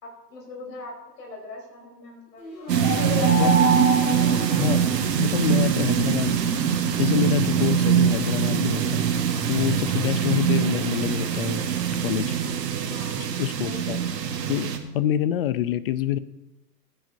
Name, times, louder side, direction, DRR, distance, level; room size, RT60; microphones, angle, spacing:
voice 1, 0.0-4.4 4.8-5.9 9.9-10.1 12.5-13.2 13.5-14.0, left 2 dB, 70° left, -1 dB, 4.3 m, -43 dB
sound 1, 2.4-5.3, equal, 90° left, 3.0 m, -27 dB
sound 2, 2.7-14.8, right 8 dB, 75° right, 1.7 m, -23 dB
voice 2, 5.2-6.4 7.0-9.1 9.5-11.6 12.0-12.3 13.2-14.0 14.5-16.2, left 11 dB, 35° left, 16 dB, 0.5 m, -26 dB
20.0 x 9.6 x 2.7 m, 0.99 s
hypercardioid pair, 125°, 50 cm